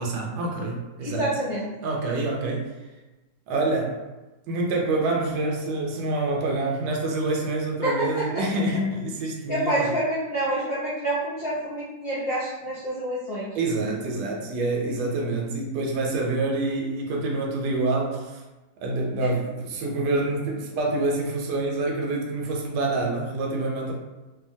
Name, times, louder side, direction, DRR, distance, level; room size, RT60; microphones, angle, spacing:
voice 1, 0.0-1.3 1.8-2.7 3.5-4.0 4.5-9.9 13.5-18.4 18.8-23.9, right 2 dB, 70° right, 0 dB, 1.1 m, -26 dB
voice 2, 1.0-1.7 7.8-8.4 9.5-13.6 19.2-19.3, right 1 dB, 80° left, -10 dB, 0.5 m, -27 dB
2.7 x 2.5 x 2.6 m, 1.1 s
omnidirectional pair, 1.9 m